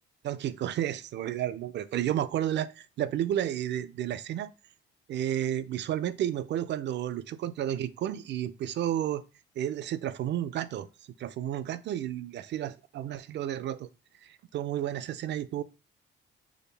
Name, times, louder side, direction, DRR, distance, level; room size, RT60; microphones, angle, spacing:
voice 1, 0.2-4.5 5.1-9.2 9.6-10.9 11.2-13.9 14.2-15.6, right 11 dB, 60° right, 0.4 m, -32 dB
4.8 x 2.3 x 3.3 m
cardioid pair, 90°, 20 cm